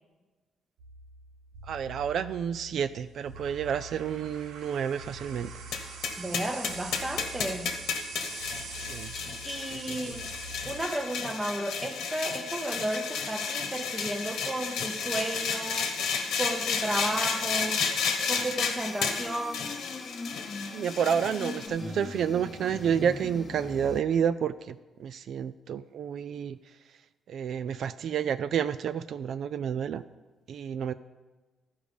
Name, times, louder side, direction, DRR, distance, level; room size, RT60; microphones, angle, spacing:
sound 1, 0.8-10.8, right 4 dB, 85° right, 0.9 m, -44 dB
voice 1, 1.7-5.5 8.8-9.1 9.7-10.2 20.7-26.6 27.3-30.0 30.5-30.9, right 8 dB, 65° right, 13 dB, 0.3 m, -30 dB
sound 2, 5.7-21.7, left 6 dB, 80° left, 1.2 m, -32 dB
voice 2, 6.2-7.7 9.4-10.3 10.7-15.9 16.4-17.8 18.3-19.7, right 1 dB, 15° right, 5 dB, 0.8 m, -33 dB
sound 3, 18.8-24.0, left 3 dB, 35° left, 0.7 m, -41 dB
12.5 x 5.0 x 5.2 m, 1.2 s
cardioid pair, 90°, 0 cm